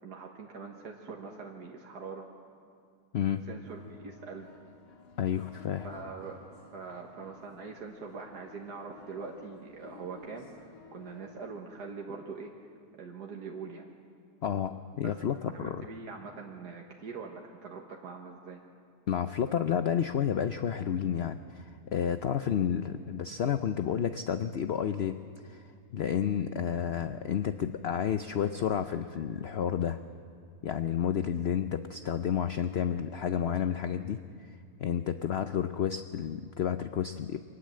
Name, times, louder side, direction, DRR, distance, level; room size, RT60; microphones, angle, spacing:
voice 1, 0.0-2.3 3.5-4.5 5.8-6.4 6.7-12.5 12.9-13.9 15.0-15.2 15.5-18.6, right 5 dB, 90° right, 0 dB, 2.0 m, -43 dB
sound 1, 3.7-11.4, left 4 dB, 85° left, 2.3 m, -54 dB
voice 2, 5.2-5.9 14.4-15.8 19.1-25.6 25.9-30.0 30.6-34.2 34.8-37.4, left 9 dB, 55° left, 9 dB, 0.7 m, -31 dB
25.0 x 19.0 x 7.6 m, 2.4 s
omnidirectional pair, 1.7 m